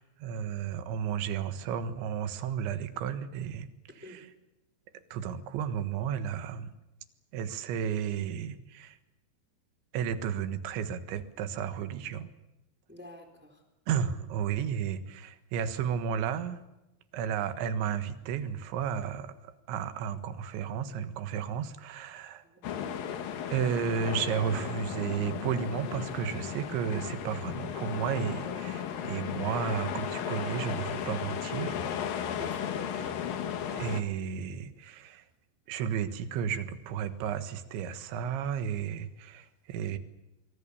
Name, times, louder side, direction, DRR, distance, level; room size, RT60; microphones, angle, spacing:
voice 1, 0.0-3.7 4.0-4.3 5.1-6.7 7.3-9.0 9.9-12.3 13.9-16.6 17.1-22.4 23.5-31.8 33.0-33.1 33.7-35.3 35.7-40.0, right 8 dB, 85° right, 11 dB, 3.8 m, -33 dB
voice 2, 12.9-13.6 22.4-22.6 32.4-32.7, left 1 dB, 5° right, 6 dB, 3.4 m, -47 dB
sound 1, 22.6-34.0, left 8 dB, 60° left, 2.9 m, -35 dB
25.0 x 23.5 x 7.0 m, 0.95 s
omnidirectional pair, 5.2 m